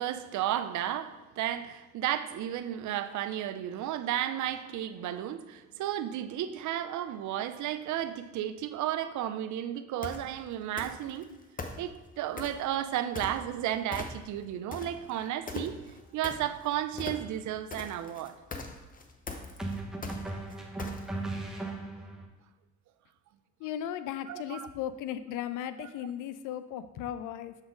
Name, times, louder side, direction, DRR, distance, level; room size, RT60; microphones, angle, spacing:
voice 1, 0.0-11.3 11.8-15.8 16.1-18.3 24.3-24.7, right 11 dB, 75° right, 11 dB, 0.5 m, -33 dB
sound 1, 10.0-10.3 10.8-11.2 11.6-12.7 13.2-13.6 13.9-14.4 14.7-21.3, left 3 dB, 30° left, 0.7 m, -40 dB
sound 2, 16.9-17.2 19.6-22.3, right 2 dB, ahead, 0.9 m, -37 dB
voice 2, 23.6-27.6, left 10 dB, 90° left, 13 dB, 0.5 m, -36 dB
6.9 x 4.1 x 3.7 m, 1.1 s
cardioid pair, 90°, 30 cm